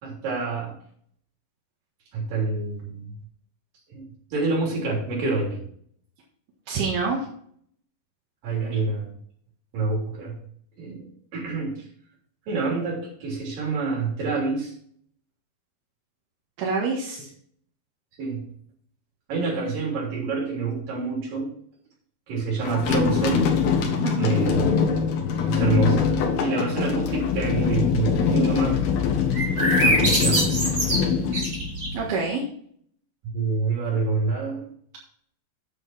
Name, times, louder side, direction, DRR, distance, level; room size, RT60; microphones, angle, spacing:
voice 1, 0.0-0.7 2.1-3.1 3.9-4.0 4.3-5.6 8.4-9.1 9.7-10.4 10.8-11.8 12.5-14.7 18.2-18.5 19.3-21.5 22.3-23.5 24.2-24.6 25.5-26.1 26.4-28.8 29.6-30.6 33.2-34.7, right 3 dB, 65° right, -2 dB, 5.0 m, -27 dB
voice 2, 6.7-7.2 16.6-17.3 24.0-24.4 31.9-32.4, right 4 dB, 85° right, -3 dB, 3.6 m, -26 dB
sound 1, 22.6-32.1, left 6 dB, 80° left, 3.3 m, -23 dB
sound 2, 29.3-32.0, right 1 dB, 25° right, 2.8 m, -24 dB
9.5 x 7.6 x 4.2 m, 0.63 s
omnidirectional pair, 4.3 m